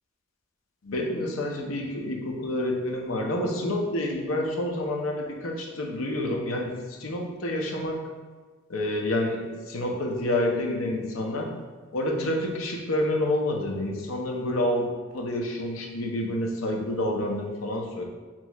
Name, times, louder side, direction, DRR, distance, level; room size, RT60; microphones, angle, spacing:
voice 1, 0.8-8.0 8.7-11.5 11.9-18.0, left 1 dB, 85° left, 1 dB, 0.7 m, -28 dB
6.1 x 2.9 x 2.3 m, 1.4 s
head